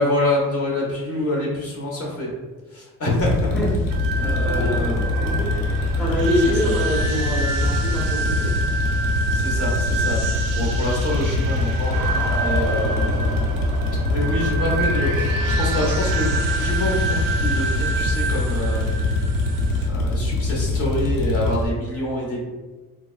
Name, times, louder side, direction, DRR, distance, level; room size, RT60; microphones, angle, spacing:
voice 1, 0.0-2.3 2.7-3.5 4.2-5.0 6.6-6.7 9.3-13.5 13.8-18.8 19.9-22.4, left 1 dB, 45° left, -3 dB, 1.0 m, -26 dB
sound 1, 3.2-21.7, left 2 dB, 80° left, 0.6 m, -23 dB
voice 2, 3.5-8.7, left 1 dB, 5° left, -6 dB, 0.6 m, -26 dB
sound 2, 3.9-19.9, right 3 dB, 75° right, 0.5 m, -28 dB
3.6 x 2.2 x 2.2 m, 1.2 s
cardioid pair, 110°, 33 cm